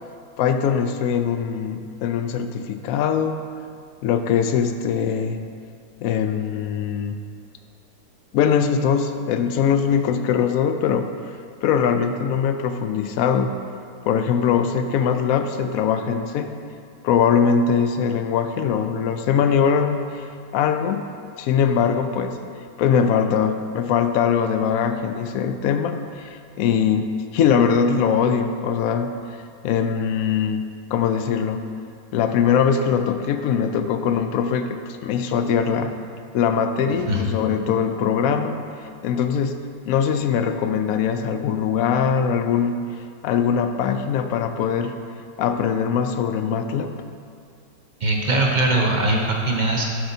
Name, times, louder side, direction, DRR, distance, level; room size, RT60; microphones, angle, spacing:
voice 1, 0.4-3.4 4.0-5.4 6.0-7.2 8.3-11.1 11.6-13.6 14.1-16.5 17.0-20.3 20.5-22.4 22.8-27.1 27.3-29.1 29.6-30.6 30.9-31.7 32.1-35.9 36.3-38.5 39.0-39.6 39.9-42.8 43.2-45.0 45.4-46.9, left 7 dB, 75° left, 7 dB, 0.8 m, -21 dB
voice 2, 48.0-49.9, right 2 dB, 45° right, -1 dB, 0.6 m, -21 dB
10.5 x 7.7 x 2.7 m, 2.2 s
omnidirectional pair, 1.9 m